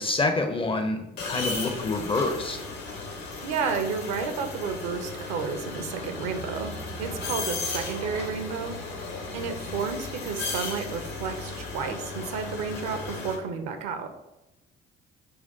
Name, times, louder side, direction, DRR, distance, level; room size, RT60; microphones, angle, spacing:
voice 1, 0.0-2.6, left 2 dB, 20° left, 6 dB, 0.4 m, -27 dB
sound 1, 1.2-13.3, left 3 dB, 70° left, 0.8 m, -35 dB
voice 2, 3.4-6.7 7.0-8.8 9.3-14.1, right 5 dB, 55° right, 7 dB, 0.6 m, -31 dB
4.2 x 2.3 x 3.8 m, 0.93 s
figure-of-eight pair, 45°, 31 cm